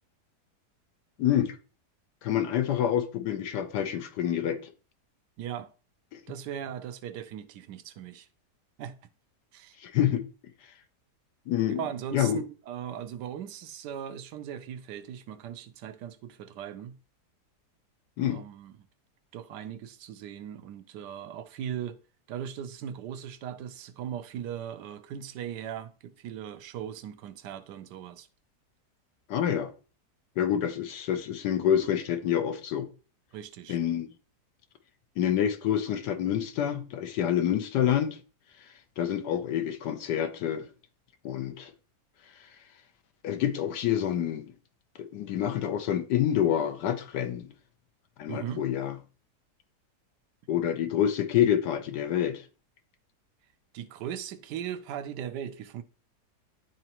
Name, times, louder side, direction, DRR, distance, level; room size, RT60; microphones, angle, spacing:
voice 1, 1.2-1.6 2.2-4.7 9.8-10.2 11.5-11.8 12.1-12.4 18.2-18.4 29.3-29.7 30.4-32.9 33.7-34.1 35.2-38.2 39.0-40.7 41.2-41.7 43.2-44.5 45.1-47.5 48.2-48.9 50.5-52.4, left 10 dB, 85° left, 1.4 m, -27 dB
voice 2, 5.4-5.7 6.3-8.3 8.8-8.9 9.5-9.8 11.6-17.0 18.2-18.7 19.3-22.0 22.3-28.3 33.3-33.8 48.3-48.6 53.7-55.8, right 9 dB, 90° right, 1.3 m, -38 dB
11.0 x 3.9 x 2.9 m
omnidirectional pair, 1.8 m